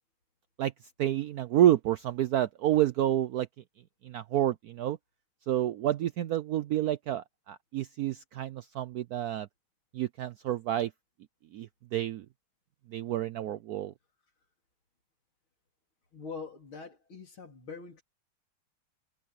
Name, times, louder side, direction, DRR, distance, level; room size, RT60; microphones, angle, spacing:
voice 1, 1.0-3.5 4.0-5.0 5.5-9.5 9.9-10.9 11.5-12.3 12.9-13.9, right 12 dB, 80° right, 0.8 m, -29 dB
voice 2, 16.1-18.0, left 5 dB, 85° left, 4.3 m, -43 dB
omnidirectional pair, 2.2 m